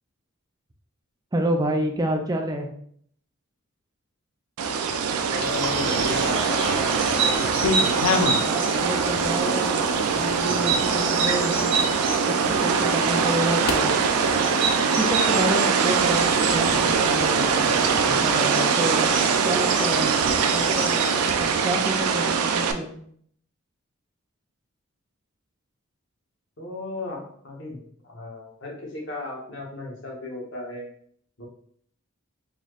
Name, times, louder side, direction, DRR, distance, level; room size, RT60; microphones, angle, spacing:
voice 1, 1.3-2.7 8.5-11.9 12.3-13.9 15.0-19.1 19.4-20.1 20.5-23.1, right 1 dB, 15° right, 4 dB, 0.4 m, -29 dB
sound 1, 4.6-22.7, right 6 dB, 85° right, 0.4 m, -23 dB
sound 2, 5.1-5.8 6.4-7.0 7.3-8.5 8.9-9.4 10.0-10.1 10.7-10.8 11.4-11.5 13.7-13.8, left 4 dB, 80° left, 0.5 m, -27 dB
voice 2, 5.3-7.4 26.6-30.9 31.4-31.5, left 2 dB, 55° left, -2 dB, 1.0 m, -35 dB
sound 3, 5.4-21.3, right 3 dB, 55° right, 0.9 m, -30 dB
4.0 x 3.1 x 2.4 m, 0.63 s
head